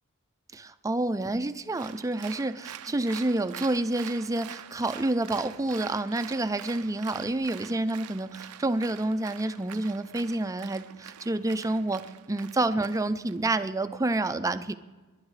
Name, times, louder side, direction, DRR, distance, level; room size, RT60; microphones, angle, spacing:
voice 1, 0.5-14.7, right 2 dB, 15° right, 11 dB, 0.4 m, -28 dB
Applause, 1.7-13.4, right 10 dB, 85° right, 0.5 m, -45 dB
28.5 x 11.5 x 3.2 m, 1.3 s
head